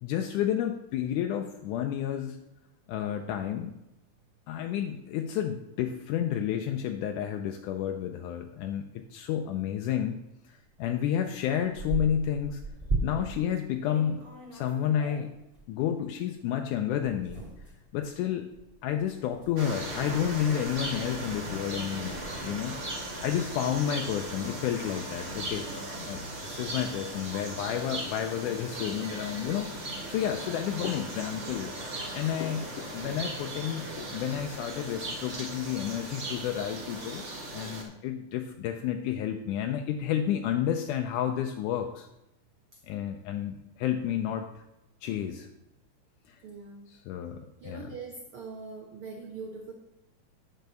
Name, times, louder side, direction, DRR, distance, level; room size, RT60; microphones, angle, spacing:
voice 1, 0.0-2.4 2.9-3.7 4.5-8.9 9.1-10.2 10.5-12.6 13.0-14.3 14.5-15.3 15.7-17.4 17.9-18.5 18.8-22.8 23.2-25.7 26.1-29.7 30.1-31.7 32.1-37.2 37.5-42.1 42.9-44.6 45.0-45.5 46.3-46.4 46.9-47.9, left 10 dB, 80° left, 5 dB, 2.0 m, -31 dB
sound 1, 10.8-10.9 11.3-13.4 13.8-15.7 16.3-16.4 17.0-23.6, right 3 dB, 25° right, 2.8 m, -38 dB
sound 2, 19.6-37.8, right 1 dB, 40° right, 1.0 m, -38 dB
voice 2, 46.4-46.9 47.6-49.7, right 4 dB, 80° right, 2 dB, 1.2 m, -42 dB
9.2 x 4.6 x 6.8 m, 0.88 s
omnidirectional pair, 3.7 m